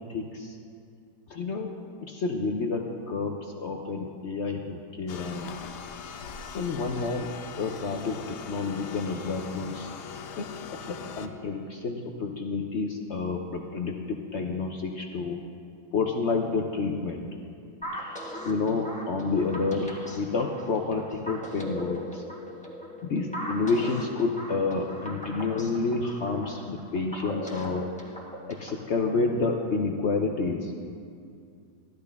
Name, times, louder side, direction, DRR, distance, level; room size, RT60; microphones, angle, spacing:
voice 1, 0.1-0.6 1.3-1.7 2.0-5.6 6.5-7.3 7.6-9.9 10.4-10.5 10.9-15.4 15.9-17.2 17.9-18.2 18.4-22.2 23.0-27.9 28.5-30.7, left 4 dB, 60° left, 2 dB, 0.8 m, -29 dB
sound 1, 5.1-11.3, left 6 dB, 90° left, 1.3 m, -41 dB
sound 2, 17.8-28.8, equal, 5° left, 1.3 m, -39 dB
15.0 x 12.0 x 3.4 m, 2.4 s
omnidirectional pair, 1.8 m